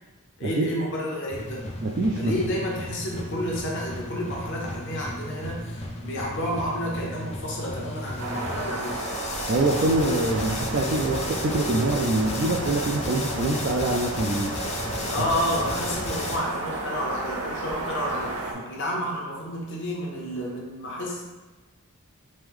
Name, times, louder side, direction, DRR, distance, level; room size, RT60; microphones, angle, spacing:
voice 1, 0.4-1.6 2.2-9.0 15.1-21.2, equal, 55° left, -3 dB, 0.9 m, -30 dB
sound 1, 1.3-16.4, left 2 dB, 30° left, 0.4 m, -34 dB
voice 2, 1.8-2.3 9.5-14.5 15.2-15.3, right 2 dB, 45° right, -1 dB, 0.3 m, -25 dB
sound 2, 8.2-18.5, right 2 dB, 80° right, 0.6 m, -33 dB
3.4 x 3.2 x 3.6 m, 1.2 s
head